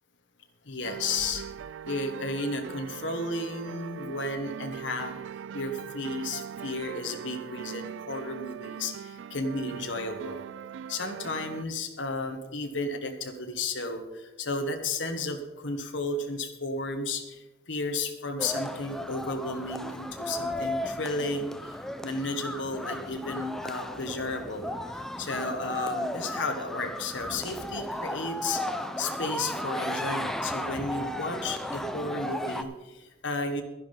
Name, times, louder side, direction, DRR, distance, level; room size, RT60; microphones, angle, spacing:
voice 1, 0.6-1.4 1.8-5.2 5.5-10.4 10.9-24.7 25.2-28.6 29.0-33.6, left 2 dB, 80° left, 5 dB, 1.3 m, -33 dB
sound 1, 0.8-11.6, right 8 dB, 85° right, 0.3 m, -41 dB
sound 2, 18.4-32.6, left 1 dB, ahead, 0.6 m, -35 dB
11.5 x 10.5 x 5.3 m, 1.1 s
head